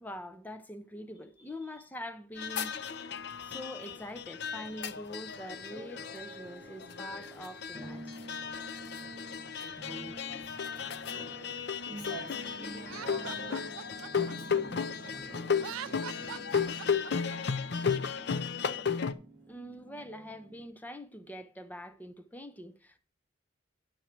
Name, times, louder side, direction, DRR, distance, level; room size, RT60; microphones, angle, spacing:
voice 1, 0.0-2.7 3.4-8.0 19.5-23.0, equal, 10° left, 0.5 m, -44 dB
voice 2, 1.4-1.8 9.6-10.7 11.0-11.4 11.9-13.6 14.1-16.8 20.1-20.2, right 2 dB, 85° left, 4.3 m, -48 dB
sound 1, 2.4-19.1, left 6 dB, 55° left, 0.5 m, -35 dB
sound 2, 3.0-3.2 5.6-20.6, right 1 dB, 15° right, 1.5 m, -49 dB
Laughter, 12.8-15.1 15.5-17.4, right 10 dB, 85° right, 0.3 m, -43 dB
10.5 x 6.3 x 4.4 m
head